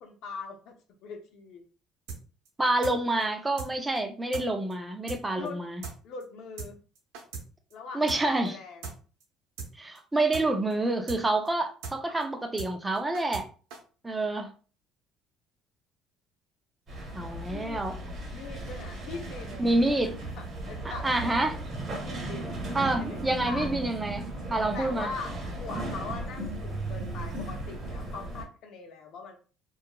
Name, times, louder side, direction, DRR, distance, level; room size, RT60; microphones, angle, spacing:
voice 1, 0.0-0.7 1.0-1.6 5.3-5.6 6.0-6.8 7.7-8.9 17.5-17.8 18.3-19.6 20.0-22.6 23.0-23.7 24.7-29.4, left 4 dB, 65° left, 0.6 m, -41 dB
sound 1, 2.1-2.2 2.5-2.6 2.8-3.0 3.2-3.3 3.6-3.7 4.0-4.1 4.3-4.5 4.7-4.8 5.1-5.2 5.5-5.6 5.8-6.0 6.2-6.3 6.6-6.7 7.0-7.5 7.7-7.8 8.1-8.2 8.5-8.6 8.8-9.0 9.2-9.3 9.6-9.7 10.0-10.1 10.3-10.5 10.7-10.8 11.1-11.2 11.5-11.6 11.8-12.0 12.2-12.3 12.6-12.7 13.0-13.5 13.7-13.8, right 5 dB, 85° right, 0.7 m, -38 dB
voice 2, 2.6-5.8 7.9-8.6 9.8-13.5 14.0-14.5 17.1-17.9 19.6-20.2 20.8-21.6 22.7-25.1, right 2 dB, 15° right, 0.4 m, -28 dB
sound 2, 16.9-28.4, right 2 dB, 40° right, 1.1 m, -36 dB
2.8 x 2.3 x 2.2 m
cardioid pair, 115°, 0 cm